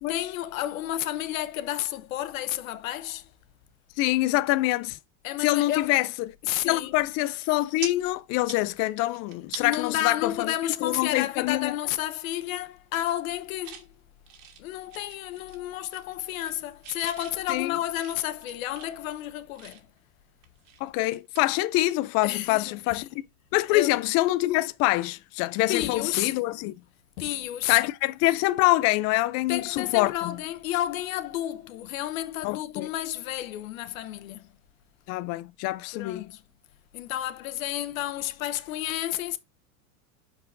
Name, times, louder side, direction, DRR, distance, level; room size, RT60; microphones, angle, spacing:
voice 1, 0.1-3.3 5.2-6.0 6.4-7.0 9.6-13.9 14.6-19.9 22.2-23.0 23.7-23.9 25.7-26.3 27.2-27.8 29.5-34.5 35.9-36.4 36.9-39.4, left 13 dB, 80° left, 0.9 m, -31 dB
voice 2, 4.0-5.0 5.4-6.3 6.6-11.7 17.5-17.8 20.8-23.2 23.5-26.7 27.7-30.4 32.4-32.9 35.1-36.3, left 18 dB, 40° left, 0.4 m, -25 dB
sound 1, 6.8-7.0 7.4-7.9 8.3-9.8 10.3-10.4 10.9-11.4 11.8-12.0 12.3-12.7 13.1-13.9 14.3-15.6 15.9-16.6 16.8-20.0 20.4-22.3 22.5-22.7 24.6-24.8, right 9 dB, 65° right, 2.0 m, -44 dB
12.5 x 4.6 x 2.6 m
supercardioid pair, 115°, 40 cm